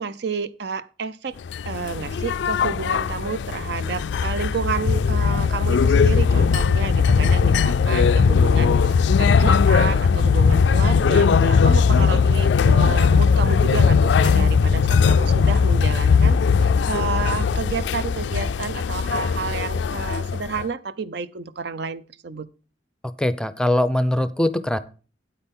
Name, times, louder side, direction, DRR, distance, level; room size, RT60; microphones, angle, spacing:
voice 1, 0.0-1.4 1.7-22.5, right 5 dB, 60° right, 0.6 m, -30 dB
sound 1, 1.5-20.6, left 5 dB, 65° left, 0.3 m, -19 dB
voice 2, 23.2-24.8, left 1 dB, 5° left, 0.5 m, -21 dB
9.0 x 8.5 x 3.7 m
head